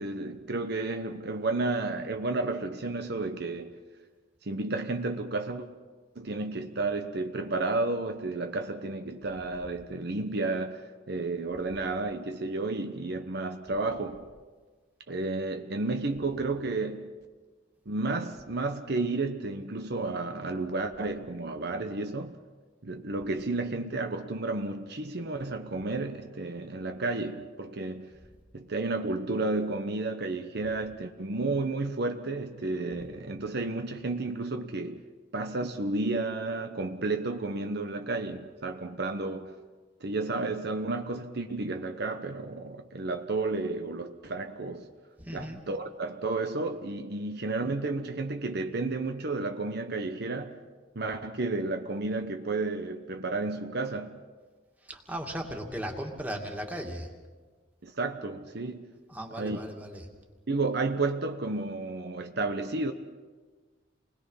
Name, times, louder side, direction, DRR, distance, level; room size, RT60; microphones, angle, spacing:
voice 1, 0.0-3.8 4.4-5.7 6.1-14.3 15.1-17.2 17.9-22.4 22.8-28.2 28.5-35.1 35.3-39.5 40.0-44.9 45.3-50.6 50.9-54.2 57.8-58.9 59.3-59.7 60.5-62.9, right 3 dB, 60° right, 1.0 m, -32 dB
voice 2, 45.2-45.6 54.8-57.1 59.1-60.0, equal, 10° right, 2.4 m, -37 dB
28.5 x 20.5 x 5.7 m
head